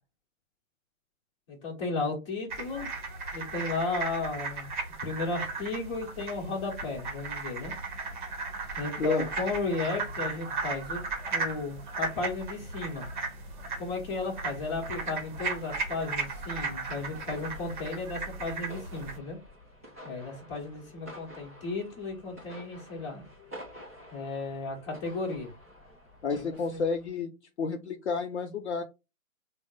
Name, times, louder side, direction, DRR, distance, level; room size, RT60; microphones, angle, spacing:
voice 1, 1.5-2.9 3.3-4.7 5.0-7.7 8.7-11.0 11.3-13.1 13.8-19.4 20.0-23.2 24.1-25.5 26.3-26.8, left 3 dB, 20° left, 1.1 m, -34 dB
sound 1, 2.5-19.2, right 3 dB, 35° right, 0.9 m, -36 dB
voice 2, 9.0-9.3 26.2-27.3 27.6-28.8, left 4 dB, 55° left, 0.5 m, -30 dB
sound 2, 17.1-27.1, equal, 10° right, 0.4 m, -50 dB
3.5 x 2.1 x 3.7 m
figure-of-eight pair, 140°, 41 cm